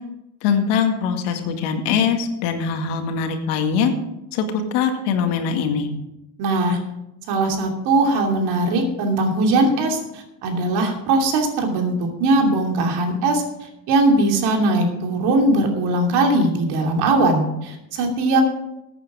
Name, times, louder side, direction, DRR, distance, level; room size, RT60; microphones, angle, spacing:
voice 1, 0.4-3.9 4.3-5.9, left 6 dB, 70° left, 5 dB, 2.1 m, -22 dB
voice 2, 6.4-6.8 7.3-18.4, right 2 dB, 65° right, 2 dB, 3.0 m, -20 dB
15.0 x 8.9 x 4.9 m, 0.89 s
supercardioid pair, 115°, 43 cm